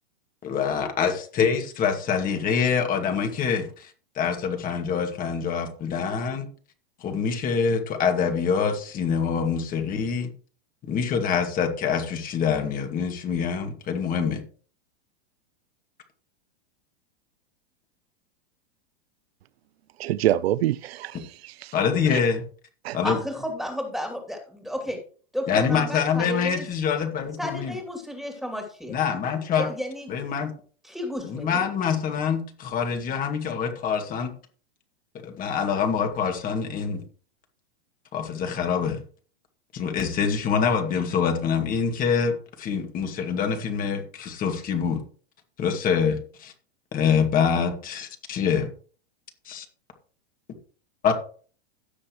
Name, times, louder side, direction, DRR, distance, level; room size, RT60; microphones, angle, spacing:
voice 1, 0.4-6.5 7.0-10.3 10.8-14.4 21.7-22.4 22.9-23.2 25.5-27.8 28.9-29.7 30.1-30.5 31.2-34.3 35.2-37.0 38.1-39.0 39.7-45.0 45.6-46.5 46.9-48.7 49.5-49.7 51.0-51.1, left 6 dB, 25° left, 2.2 m, -25 dB
voice 2, 20.0-21.7 22.1-22.2 22.8-23.0, right 13 dB, 80° right, 0.6 m, -26 dB
voice 3, 23.0-25.0 25.3-26.6 27.4-29.0 29.6-30.2 30.8-31.6, equal, ahead, 2.7 m, -32 dB
17.0 x 6.3 x 3.1 m
supercardioid pair, 140°, 31 cm